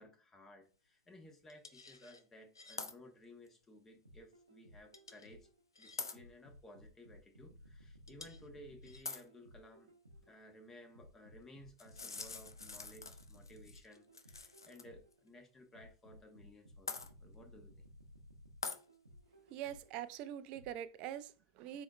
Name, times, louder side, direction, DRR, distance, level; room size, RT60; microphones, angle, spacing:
voice 1, 0.0-5.5 5.8-9.9 10.2-17.8, left 1 dB, 20° left, 1.2 m, -58 dB
sound 1, 1.5-2.2 2.6-2.9 3.5-3.6 4.9-5.3 5.8-6.2 8.1-8.5 8.8-9.2 11.8-14.8 15.1-15.2 16.9-17.1 18.6-18.8, left 4 dB, 85° left, 0.4 m, -46 dB
sound 2, 4.1-5.6 6.2-10.4 11.0-15.2 15.8-20.0 20.6-20.7, equal, 90° right, 0.8 m, -59 dB
voice 2, 19.5-21.8, right 11 dB, 45° right, 0.4 m, -44 dB
4.2 x 4.1 x 2.4 m
figure-of-eight pair, 90°, 2 cm